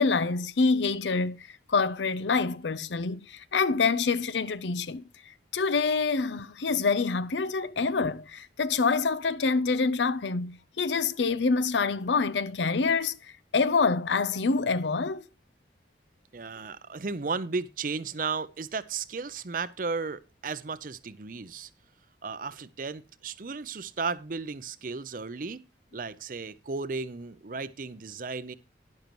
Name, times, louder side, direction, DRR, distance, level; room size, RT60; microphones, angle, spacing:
voice 1, 0.0-15.3, left 4 dB, 85° left, 0.6 m, -26 dB
voice 2, 16.3-21.7 22.2-25.6 25.9-28.5, right 4 dB, 50° right, 0.6 m, -34 dB
12.0 x 10.5 x 3.0 m
head